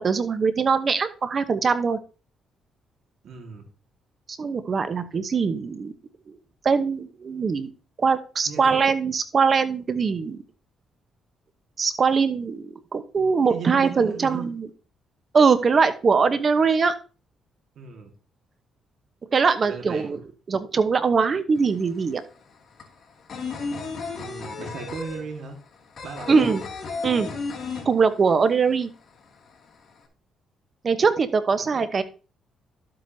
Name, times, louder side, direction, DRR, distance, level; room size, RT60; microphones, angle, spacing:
voice 1, 0.0-2.0 4.3-5.9 6.3-6.4 6.6-7.7 8.0-10.4 11.8-14.7 15.3-16.9 19.3-20.2 20.5-22.2 26.3-26.6 27.0-27.3 27.8-28.9 30.8-32.0, right 5 dB, 40° right, 11 dB, 1.0 m, -22 dB
voice 2, 3.2-3.6 8.5-8.8 13.5-14.5 17.8-18.1 19.6-20.3 24.1-25.6 26.0-26.5 31.6-31.7, right 5 dB, 65° right, 3 dB, 1.8 m, -37 dB
sound 1, 21.6-21.7 21.9-28.5 28.8-28.9 29.2-30.0, left 4 dB, 50° left, 2.5 m, -34 dB
12.0 x 7.8 x 2.8 m, 0.34 s
cardioid pair, 90°, 0 cm